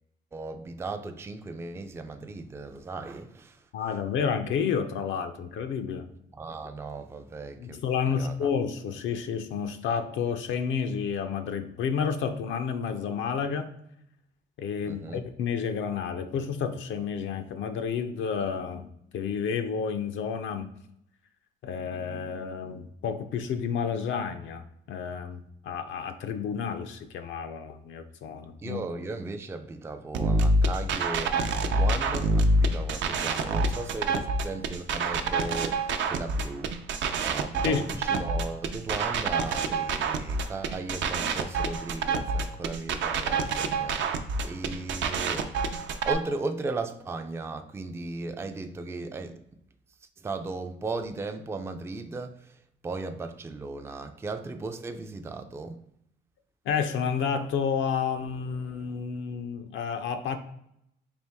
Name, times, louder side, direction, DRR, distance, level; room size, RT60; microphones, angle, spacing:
voice 1, 0.3-3.6 6.4-8.5 14.9-15.3 28.6-36.8 37.2-45.5 46.1-49.4 50.2-52.6 52.8-55.8, right 3 dB, 15° right, 0.3 m, -36 dB
voice 2, 3.7-6.1 7.6-13.7 14.6-20.7 21.6-24.6 24.9-28.8 37.6-37.8 56.7-60.4, left 6 dB, 75° left, 0.5 m, -30 dB
sound 1, 30.1-46.1, right 3 dB, 70° right, 0.5 m, -27 dB
4.3 x 2.5 x 3.4 m
cardioid pair, 90°, 20 cm